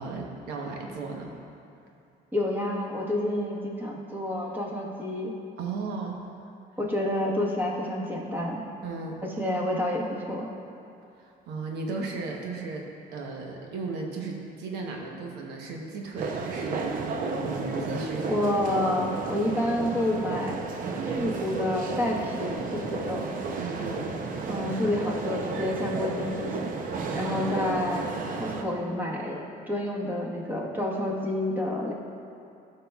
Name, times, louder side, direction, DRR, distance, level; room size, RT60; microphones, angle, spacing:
voice 1, 0.0-1.3 5.6-6.2 8.8-9.2 11.2-12.9 13.1-18.5 23.6-24.1 27.2-27.5, right 3 dB, 85° right, 0 dB, 1.0 m, -35 dB
voice 2, 2.3-5.3 6.8-8.6 9.2-10.5 18.3-20.7 21.0-23.2 24.5-26.8 27.1-28.1 28.4-31.9, left 1 dB, 10° right, -3 dB, 1.3 m, -29 dB
sound 1, 16.2-28.6, right 4 dB, 55° right, 0.6 m, -32 dB
12.5 x 5.6 x 2.3 m, 2.6 s
cardioid pair, 110°, 17 cm